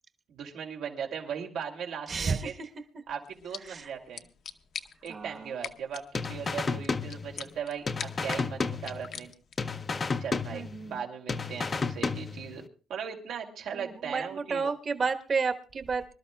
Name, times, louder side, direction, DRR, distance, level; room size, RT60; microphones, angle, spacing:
voice 1, 0.3-2.5 3.1-4.3 5.0-9.3 10.2-12.6 12.9-14.6, right 7 dB, 90° right, 1 dB, 2.7 m, -38 dB
voice 2, 2.1-2.7 2.9-3.0 3.6-3.9 5.1-5.6 10.5-11.0 13.7-16.1, right 5 dB, 40° right, 6 dB, 1.2 m, -32 dB
sound 1, 3.2-9.7, left 7 dB, 60° left, 0.8 m, -45 dB
sound 2, 6.1-7.6 7.9-9.3 9.6-11.0 11.3-12.6, left 4 dB, 30° left, 0.5 m, -32 dB
25.5 x 12.5 x 2.3 m, 0.38 s
cardioid pair, 145°, 0 cm